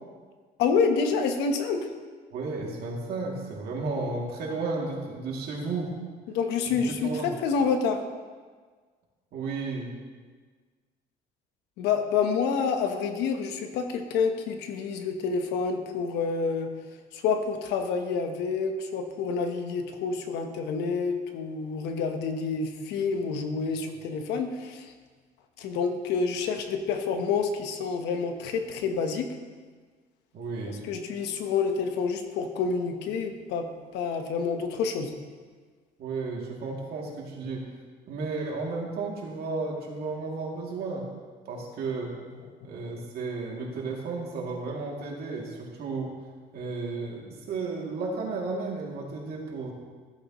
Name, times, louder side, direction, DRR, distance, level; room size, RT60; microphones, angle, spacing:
voice 1, 0.6-1.9 6.3-8.0 11.8-16.7 17.1-24.9 25.6-29.3 30.7-33.7 33.9-35.1, left 5 dB, 90° left, 6 dB, 1.1 m, -28 dB
voice 2, 2.3-5.9 7.0-7.3 9.3-10.0 30.3-30.8 36.0-37.6 38.1-41.1 41.4-42.1 42.6-46.1 46.5-49.7, right 3 dB, 65° right, -2 dB, 2.6 m, -33 dB
15.0 x 8.6 x 3.1 m, 1.5 s
cardioid pair, 110°, 17 cm